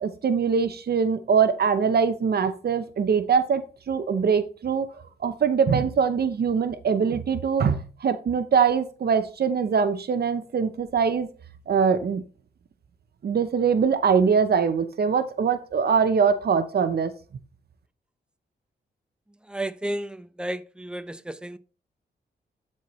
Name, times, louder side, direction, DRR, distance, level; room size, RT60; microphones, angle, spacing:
voice 1, 0.0-4.9 5.2-11.3 11.7-12.2 13.2-17.1, right 6 dB, 60° right, 0.7 m, -23 dB
voice 2, 19.4-21.6, right 1 dB, 5° right, 0.7 m, -32 dB
12.0 x 4.4 x 3.1 m
cardioid pair, 70°, 18 cm